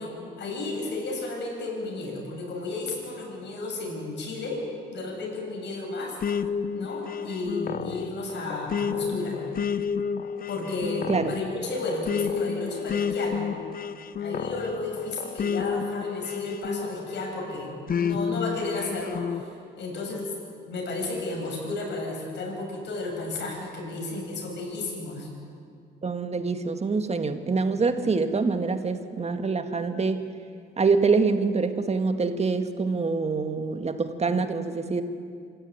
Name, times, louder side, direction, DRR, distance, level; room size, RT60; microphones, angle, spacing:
voice 1, 0.0-6.2 6.7-9.4 10.5-13.6 14.2-19.5 19.8-20.3 20.7-25.3, left 2 dB, 60° left, -1 dB, 7.5 m, -33 dB
sound 1, 6.2-17.3 17.9-19.4, left 6 dB, 45° left, 0.8 m, -30 dB
voice 2, 26.0-30.2 30.8-35.0, right 4 dB, 35° right, 8 dB, 1.7 m, -25 dB
26.0 x 13.5 x 9.4 m, 2.3 s
cardioid pair, 90°, 20 cm